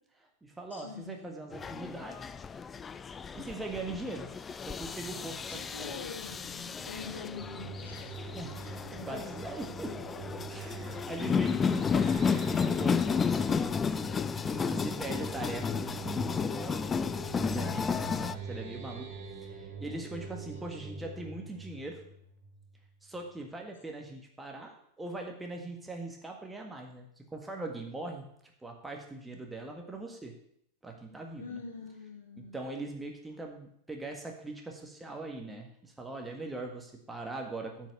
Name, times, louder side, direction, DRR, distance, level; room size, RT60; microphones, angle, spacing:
voice 1, 0.2-2.3 3.3-4.3 4.6-5.9 7.0-7.2 8.2-9.9 10.4-13.7 14.4-16.8 17.4-19.1 19.4-22.0 23.0-28.3 28.6-30.3 30.8-31.6 32.5-37.9, right 2 dB, 10° right, 2 dB, 1.7 m, -41 dB
voice 2, 0.7-1.3 5.5-9.4 10.9-11.0 20.1-20.6 31.4-32.6, left 5 dB, 65° left, 1 dB, 2.5 m, -46 dB
sound 1, 1.5-18.3, left 6 dB, 20° left, 0.4 m, -32 dB
sound 2, 7.4-22.9, right 3 dB, 50° right, 1.8 m, -43 dB
9.1 x 6.4 x 6.7 m, 0.69 s
figure-of-eight pair, 90°, 0 cm